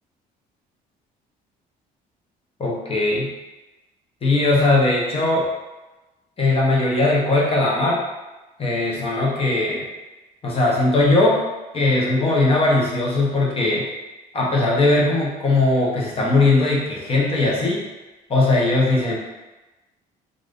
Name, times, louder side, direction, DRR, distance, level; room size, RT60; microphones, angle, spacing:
voice 1, 2.6-3.3 4.2-5.5 6.4-8.0 8.6-9.9 10.4-11.4 11.7-13.9 14.3-17.8 18.3-19.1, left 2 dB, 35° left, -3 dB, 0.9 m, -19 dB
2.6 x 2.5 x 3.6 m, 1.1 s
cardioid pair, 110°, 17 cm